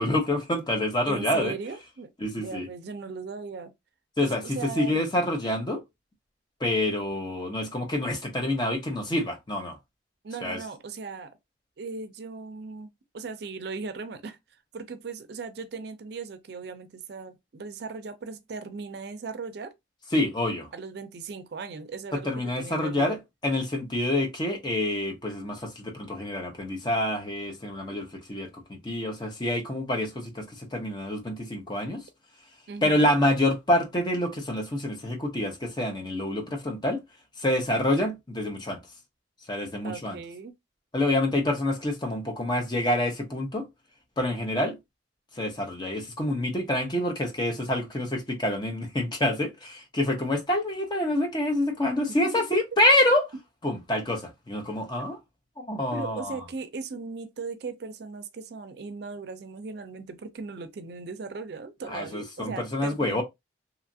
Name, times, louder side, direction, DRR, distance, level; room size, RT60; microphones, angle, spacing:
voice 1, 0.0-1.5 2.2-2.7 4.2-5.8 6.6-9.8 10.4-10.6 20.1-20.7 22.1-32.0 32.8-37.0 37.4-38.8 39.5-40.2 40.9-43.7 44.2-44.8 45.3-53.3 53.6-55.2 55.6-56.4 61.9-63.2, left 1 dB, 25° left, 0.7 m, -27 dB
voice 2, 1.1-2.1 2.4-3.7 4.2-5.0 10.2-11.4 11.8-14.4 14.7-19.7 20.7-23.2 32.7-33.1 39.8-40.5 52.2-52.5 55.9-63.2, right 4 dB, 60° right, 0.4 m, -38 dB
2.9 x 2.4 x 2.5 m
head